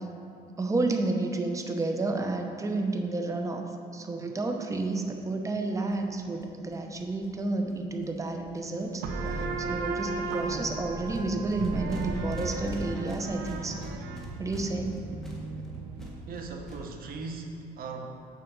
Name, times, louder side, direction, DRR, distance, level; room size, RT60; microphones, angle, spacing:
voice 1, 0.6-3.7 3.9-13.9 14.4-14.9, right 2 dB, 20° right, 4 dB, 0.8 m, -31 dB
sound 1, 4.8-4.9 5.1-5.2 5.4-5.5 5.7-8.9 9.3-9.6 9.9-17.1, equal, 5° left, 1.6 m, -44 dB
sound 2, 9.0-16.3, right 3 dB, 85° right, 0.8 m, -35 dB
voice 2, 16.3-18.1, right 4 dB, 65° right, 3 dB, 1.0 m, -38 dB
6.9 x 5.1 x 6.6 m, 2.5 s
cardioid pair, 95°, 16 cm